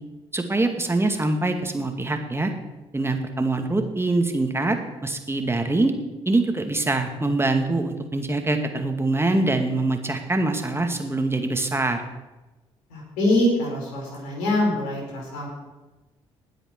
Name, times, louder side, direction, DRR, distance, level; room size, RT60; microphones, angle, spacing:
voice 1, 0.3-2.5 2.9-5.9 6.3-12.0, right 2 dB, 15° right, 5 dB, 2.2 m, -24 dB
voice 2, 12.9-15.5, left 1 dB, 75° left, -3 dB, 5.3 m, -24 dB
20.0 x 8.1 x 4.7 m, 1.1 s
hypercardioid pair, 45°, 15 cm